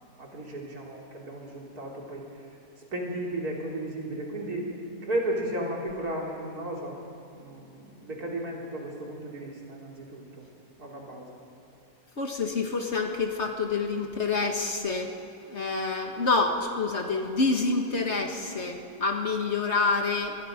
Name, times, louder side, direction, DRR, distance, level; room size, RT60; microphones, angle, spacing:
voice 1, 0.0-2.3 2.9-4.7 5.0-7.0 7.3-10.5 10.8-11.4, right 1 dB, 70° right, -2 dB, 3.9 m, -34 dB
voice 2, 12.2-15.1 15.5-20.4, left 3 dB, 45° left, 3 dB, 1.9 m, -27 dB
25.5 x 21.0 x 5.2 m, 2.9 s
omnidirectional pair, 1.7 m